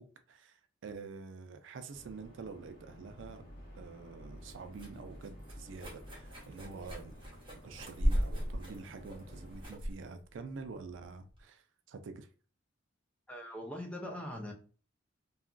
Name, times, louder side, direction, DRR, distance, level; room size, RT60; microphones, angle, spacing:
voice 1, 0.0-3.5 3.7-7.1 7.6-12.3, right 4 dB, 70° right, 0.4 m, -47 dB
sound 1, 1.9-9.6, equal, 55° left, 1.1 m, -52 dB
sound 2, 3.7-11.4, equal, 25° right, 0.9 m, -38 dB
voice 2, 13.3-14.5, left 1 dB, 5° left, 0.4 m, -41 dB
2.8 x 2.4 x 2.4 m
head